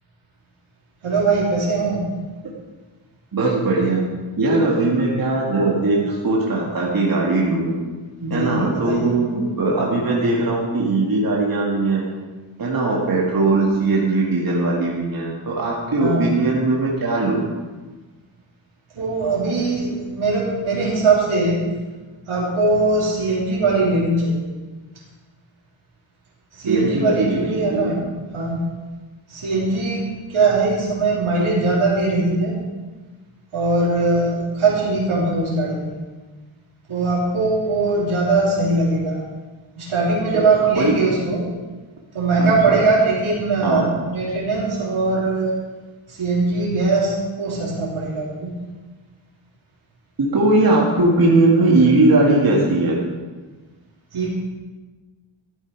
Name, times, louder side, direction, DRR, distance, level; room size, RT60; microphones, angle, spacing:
voice 1, 1.0-2.0 8.2-9.1 16.0-16.3 18.9-21.6 22.3-24.5 26.5-28.0 28.3-28.6 29.3-30.0 30.3-32.5 33.5-35.9 36.9-39.2 39.8-41.4 42.1-45.6 46.1-48.5 54.1-54.3, right 3 dB, 80° right, -6 dB, 3.7 m, -20 dB
voice 2, 3.3-4.0 4.4-7.7 8.3-12.0 12.6-17.4 26.7-28.0 40.3-40.4 40.8-41.0 42.4-42.8 43.6-43.8 50.3-53.0, right 2 dB, 45° right, -3 dB, 2.1 m, -19 dB
13.5 x 8.8 x 4.7 m, 1.3 s
cardioid pair, 80°, 49 cm